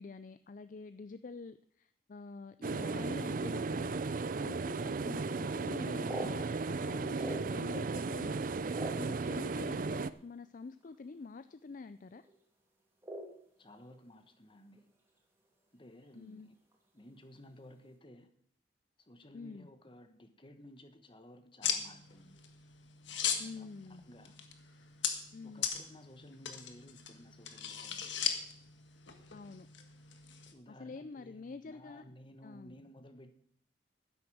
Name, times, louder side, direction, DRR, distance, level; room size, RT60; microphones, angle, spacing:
voice 1, 0.0-12.2 16.1-16.5 19.3-19.7 23.4-24.1 25.3-25.7 29.3-29.7 30.7-32.0 32.4-32.7, left 4 dB, 45° left, 13 dB, 0.4 m, -47 dB
sound 1, 2.6-10.1, right 4 dB, 45° right, 0.4 m, -35 dB
sound 2, 5.7-7.8 8.2-9.7 10.4-10.5 10.8-11.1 11.4-11.8 12.1-12.4 13.0-14.0 14.3-15.2 15.4-15.5 15.9-16.2 16.7-17.1, right 1 dB, 15° right, 2.6 m, -44 dB
voice 2, 13.6-14.9 15.7-16.5 16.9-18.3 19.1-22.4 23.2-23.7 24.1-24.4 25.4-28.2 30.5-33.3, left 1 dB, 25° left, 8 dB, 1.2 m, -55 dB
sound 3, 21.6-30.5, left 8 dB, 80° left, 1.5 m, -39 dB
12.0 x 10.0 x 6.2 m, 0.65 s
head